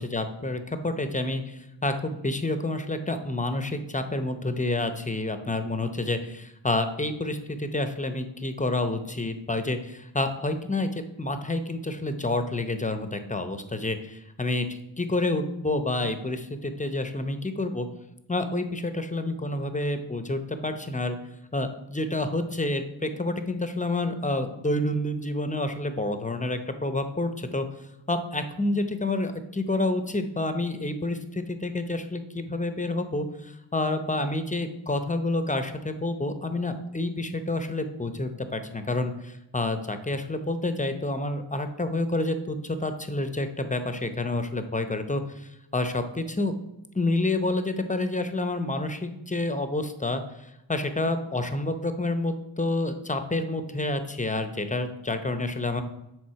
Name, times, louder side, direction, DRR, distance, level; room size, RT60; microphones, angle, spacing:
voice 1, 0.0-17.9 18.3-21.2 21.5-27.7 28.1-46.6 46.9-50.2 50.7-55.8, left 2 dB, 15° left, 8 dB, 0.6 m, -29 dB
7.7 x 3.8 x 5.7 m, 0.88 s
wide cardioid pair, 70°, 46 cm